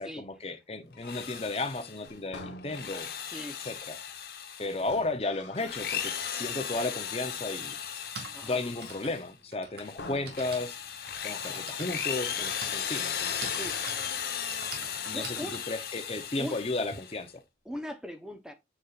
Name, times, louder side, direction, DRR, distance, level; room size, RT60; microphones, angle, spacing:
voice 1, 0.0-3.1 3.6-4.0 4.6-7.8 8.4-10.8 11.2-13.6 15.0-17.3, left 2 dB, 35° left, 0.8 m, -34 dB
sound 1, 0.8-3.3 4.7-6.4 6.8-7.5 8.0-9.4 10.0-11.1 11.3-11.4 11.9-12.4 13.5-14.1, left 2 dB, 85° left, 1.2 m, -49 dB
Drill, 0.9-2.1 2.6-5.0 5.5-9.3 9.7-17.2, left 8 dB, 60° left, 1.2 m, -36 dB
voice 2, 3.2-3.6 8.3-8.6 13.5-13.7 15.1-15.6 16.4-16.6 17.7-18.5, equal, 5° right, 0.9 m, -39 dB
Typing, 6.8-6.9 7.8-17.0, right 4 dB, 70° right, 2.4 m, -46 dB
7.4 x 6.6 x 2.5 m
head